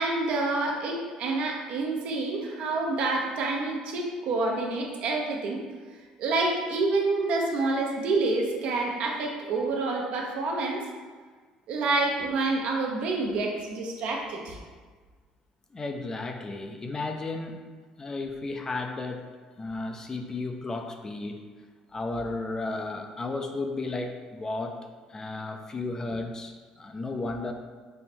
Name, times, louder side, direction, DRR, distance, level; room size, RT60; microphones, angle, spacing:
voice 1, 0.0-5.6 6.2-10.8 11.7-14.6, right 3 dB, 65° right, 0 dB, 0.8 m, -28 dB
voice 2, 15.7-17.6 18.0-19.3 19.6-21.4 21.9-24.8 25.1-27.5, left 3 dB, 25° left, 4 dB, 0.4 m, -33 dB
5.5 x 2.1 x 4.3 m, 1.5 s
supercardioid pair, 90°, 2 cm